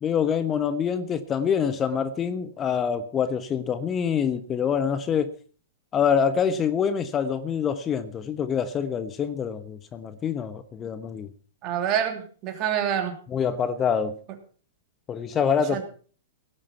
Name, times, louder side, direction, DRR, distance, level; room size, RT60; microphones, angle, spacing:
voice 1, 0.0-5.3 5.9-11.3 13.3-14.1 15.1-15.8, left 7 dB, 25° left, 12 dB, 1.2 m, -25 dB
voice 2, 11.6-13.1 15.7-15.8, right 9 dB, 40° right, 6 dB, 3.1 m, -26 dB
17.5 x 8.8 x 5.8 m, 0.42 s
hypercardioid pair, 115°, 0 cm